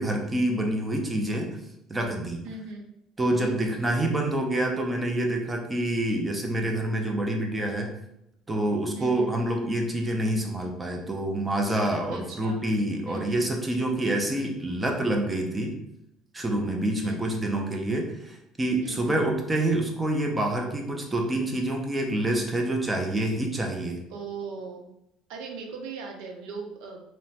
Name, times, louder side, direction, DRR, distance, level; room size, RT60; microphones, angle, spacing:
voice 1, 0.0-1.5 1.9-2.4 3.2-7.9 8.5-15.8 16.3-24.0, right 1 dB, 15° right, 2 dB, 0.5 m, -27 dB
voice 2, 2.4-2.8 3.4-3.8 9.0-9.3 12.1-12.5 13.1-13.5 17.0-17.3 18.8-19.3 24.1-24.9 25.3-27.0, right 4 dB, 80° right, 2 dB, 0.5 m, -39 dB
2.9 x 2.1 x 2.8 m, 0.81 s
cardioid pair, 120°, 0 cm